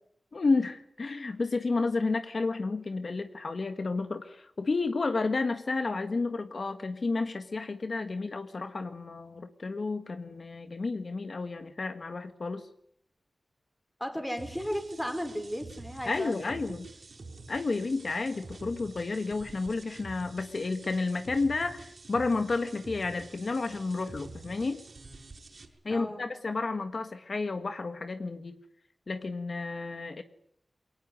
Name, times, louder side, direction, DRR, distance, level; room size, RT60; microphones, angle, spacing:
voice 1, 0.3-12.7 16.1-16.9 17.5-24.8 25.9-28.6 29.1-30.2, left 3 dB, 55° left, 8 dB, 1.6 m, -31 dB
voice 2, 14.0-16.8 25.9-26.3, equal, 5° left, 8 dB, 4.5 m, -35 dB
sound 1, 14.4-25.7, right 3 dB, 55° right, 5.7 m, -48 dB
23.5 x 18.5 x 9.5 m, 0.70 s
wide cardioid pair, 110°, 0 cm